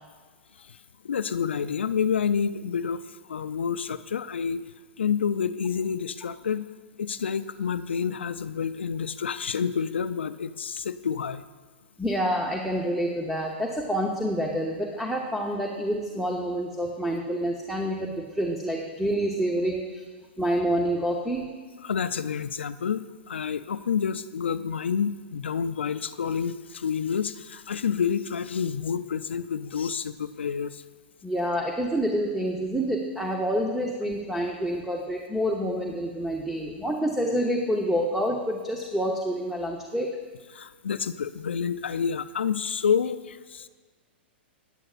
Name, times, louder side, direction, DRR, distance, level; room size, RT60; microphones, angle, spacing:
voice 1, 1.0-4.6 5.0-6.6 7.0-11.4 21.8-30.8 40.5-43.7, left 7 dB, 85° left, 13 dB, 0.4 m, -29 dB
voice 2, 12.0-20.0 20.4-21.5 31.2-40.1, equal, 5° right, 1 dB, 0.9 m, -27 dB
15.0 x 9.9 x 2.5 m, 1.4 s
hypercardioid pair, 115°, 6 cm